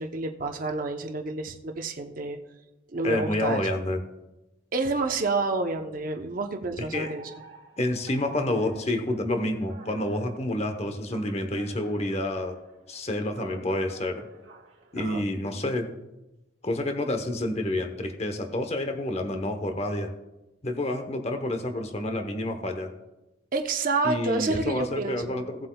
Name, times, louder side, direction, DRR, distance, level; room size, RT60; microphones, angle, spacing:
voice 1, 0.0-2.4 2.9-3.6 4.7-7.3 15.0-15.2 23.5-25.4, right 3 dB, 45° right, 4 dB, 0.7 m, -29 dB
voice 2, 3.0-4.0 6.8-7.1 7.8-12.6 12.9-14.2 14.9-15.9 16.6-20.1 20.6-22.9 24.0-25.7, left 1 dB, 35° left, 6 dB, 0.9 m, -29 dB
Alarm, 6.9-15.5, right 4 dB, 80° right, 1.5 m, -50 dB
17.0 x 7.8 x 2.3 m, 1.0 s
head